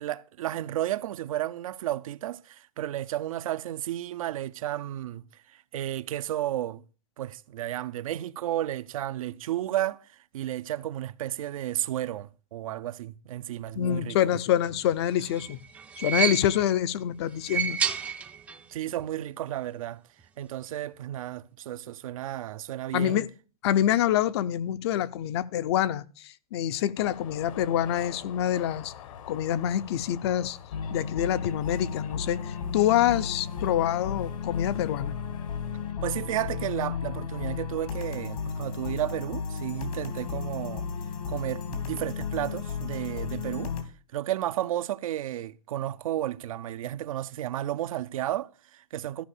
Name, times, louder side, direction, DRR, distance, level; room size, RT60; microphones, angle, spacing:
voice 1, 0.0-6.8 7.2-14.2 18.7-20.0 20.4-23.2 36.0-40.9 41.3-43.7 44.1-49.2, right 13 dB, 70° right, 0.6 m, -33 dB
voice 2, 13.8-15.6 16.0-17.8 22.9-23.3 23.6-28.9 29.3-30.6 30.9-35.1, left 11 dB, 45° left, 0.6 m, -26 dB
sound 1, 14.9-16.8 17.3-18.7 19.0-19.1 20.2-20.3, right 7 dB, 10° right, 0.5 m, -31 dB
sound 2, 27.0-35.9, left 9 dB, 65° left, 1.1 m, -47 dB
sound 3, 30.7-43.8, left 6 dB, 85° left, 2.7 m, -34 dB
13.5 x 5.3 x 6.7 m
supercardioid pair, 160°, 19 cm